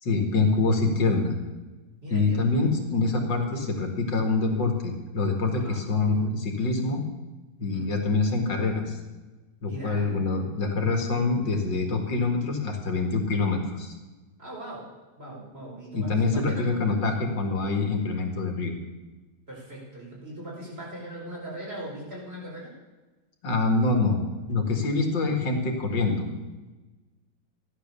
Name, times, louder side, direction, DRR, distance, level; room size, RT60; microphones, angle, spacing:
voice 1, 0.0-1.3 2.1-7.0 7.6-9.0 9.6-13.9 15.9-18.8 23.4-24.2 24.5-26.3, left 3 dB, 85° left, 3 dB, 2.8 m, -25 dB
voice 2, 2.0-2.7 5.6-5.8 7.7-7.9 9.6-10.1 14.4-14.8 15.2-17.1 19.5-22.7, right 1 dB, 35° right, -5 dB, 5.5 m, -39 dB
15.0 x 11.5 x 7.0 m, 1.2 s
omnidirectional pair, 1.9 m